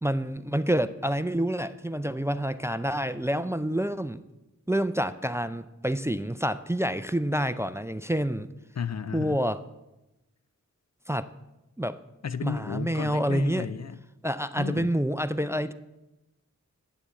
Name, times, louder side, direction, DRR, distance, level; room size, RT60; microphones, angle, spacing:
voice 1, 0.0-4.2 4.7-8.5 9.1-9.6 11.1-11.3 11.8-12.0 12.4-13.7 14.2-15.7, equal, 10° right, 0.4 m, -28 dB
voice 2, 8.8-9.4 12.2-14.0 14.6-14.9, left 6 dB, 60° left, 0.4 m, -33 dB
9.3 x 6.9 x 7.5 m
wide cardioid pair, 65°, 31 cm